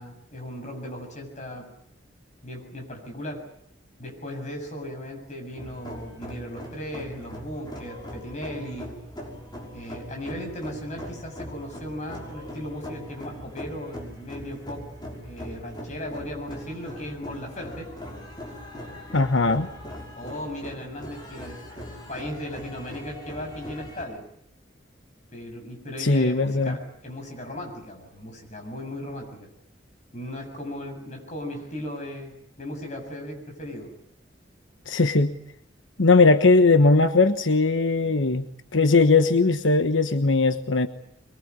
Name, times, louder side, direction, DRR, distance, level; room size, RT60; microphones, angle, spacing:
voice 1, 0.0-1.7 2.4-3.5 4.0-8.9 9.7-14.8 15.3-17.9 20.2-21.7 22.1-24.2 25.3-29.5 30.1-33.9, left 1 dB, 40° left, 2 dB, 7.3 m, -37 dB
sound 1, 5.6-24.0, equal, 25° left, 6.0 m, -40 dB
voice 2, 19.1-19.7 26.0-26.8 34.9-35.3 36.0-38.4 38.7-40.9, left 3 dB, 90° left, 9 dB, 1.2 m, -19 dB
23.5 x 23.0 x 9.7 m, 0.74 s
head